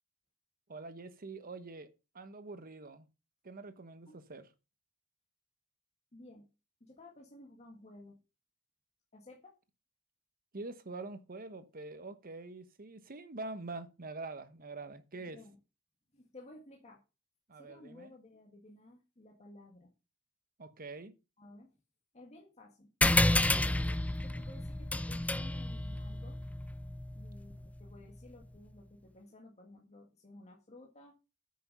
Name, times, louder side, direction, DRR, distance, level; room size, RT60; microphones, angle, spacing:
voice 1, 0.7-1.9 2.1-3.1 3.4-4.5 10.5-15.4 17.5-18.1 20.6-21.1, right 3 dB, 40° right, 1.0 m, -45 dB
voice 2, 6.1-6.5 6.8-8.2 9.1-9.5 15.2-15.6 16.1-17.0 17.6-19.9 21.4-21.7 22.1-22.9 23.6-26.4 27.1-31.1, left 1 dB, 30° left, 1.7 m, -55 dB
sound 1, 23.0-27.9, left 2 dB, 5° left, 0.4 m, -31 dB
9.3 x 6.2 x 5.4 m
head